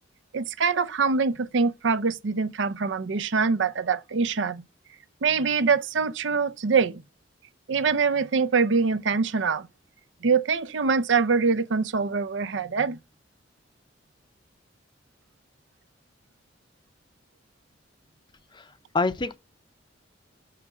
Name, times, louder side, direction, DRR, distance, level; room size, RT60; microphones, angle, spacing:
voice 1, 0.3-4.6 5.2-7.0 7.7-9.7 10.2-13.0, right 5 dB, 80° right, 0.6 m, -24 dB
voice 2, 18.5-19.4, left 3 dB, 25° left, 0.6 m, -27 dB
6.5 x 5.8 x 6.0 m
head